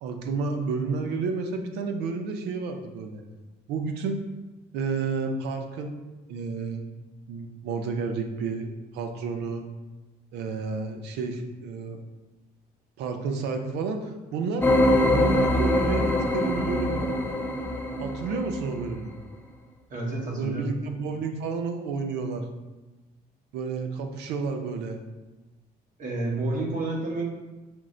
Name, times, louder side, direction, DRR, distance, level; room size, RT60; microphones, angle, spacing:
voice 1, 0.0-3.2 3.7-4.2 4.7-5.9 6.3-6.9 7.3-9.7 10.3-12.0 13.0-14.7 15.1-17.1 18.0-19.1 20.4-22.4 23.5-25.0, right 4 dB, 85° right, 5 dB, 0.6 m, -31 dB
sound 1, 14.6-18.9, left 1 dB, 10° left, 0.5 m, -24 dB
voice 2, 19.9-20.7 26.0-27.2, right 2 dB, 50° right, -2 dB, 1.1 m, -29 dB
6.1 x 2.1 x 3.7 m, 1.1 s
cardioid pair, 110°, 17 cm